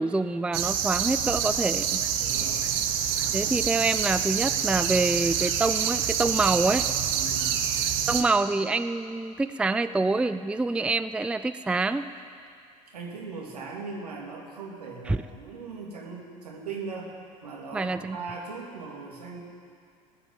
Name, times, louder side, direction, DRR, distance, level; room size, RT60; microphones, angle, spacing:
voice 1, 0.0-2.0 3.3-6.9 8.1-12.1 15.1-15.2 17.7-18.2, right 3 dB, 5° right, 12 dB, 0.4 m, -26 dB
sound 1, 0.5-8.2, right 8 dB, 60° right, 1.3 m, -27 dB
voice 2, 2.2-2.7 7.1-7.6 12.9-17.1 17.4-19.4, right 4 dB, 80° right, -1 dB, 2.5 m, -39 dB
19.0 x 8.1 x 9.2 m, 2.3 s
figure-of-eight pair, 65°, 20 cm